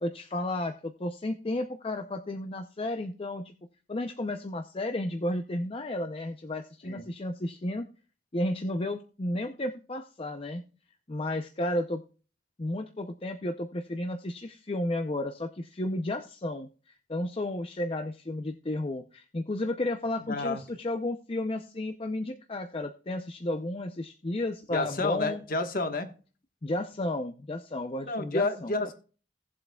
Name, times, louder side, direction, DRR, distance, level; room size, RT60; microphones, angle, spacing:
voice 1, 0.0-3.5 3.9-7.8 8.3-10.6 11.1-12.0 12.6-25.4 26.6-28.7, left 1 dB, 30° left, 6 dB, 0.6 m, -33 dB
voice 2, 20.2-20.6 24.7-26.1 28.1-28.9, left 2 dB, 50° left, 6 dB, 1.3 m, -30 dB
18.0 x 7.6 x 2.3 m, 0.38 s
head